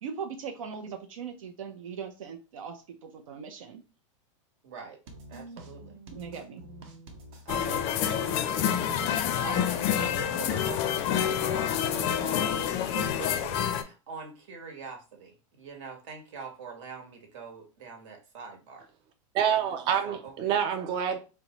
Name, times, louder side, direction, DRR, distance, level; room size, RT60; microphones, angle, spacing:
voice 1, 0.0-3.8 6.1-6.6, right 6 dB, 90° right, 0.6 m, -40 dB
voice 2, 4.6-5.0 5.3-6.0 7.4-8.7 9.4-18.9 20.0-20.9, right 5 dB, 65° right, 1.3 m, -44 dB
sound 1, 5.1-13.1, right 2 dB, 50° right, 0.8 m, -47 dB
sound 2, 7.5-13.8, left 9 dB, 35° left, 0.4 m, -28 dB
voice 3, 19.3-21.2, right 8 dB, 30° right, 0.3 m, -27 dB
3.9 x 2.2 x 2.9 m
supercardioid pair, 145°, 17 cm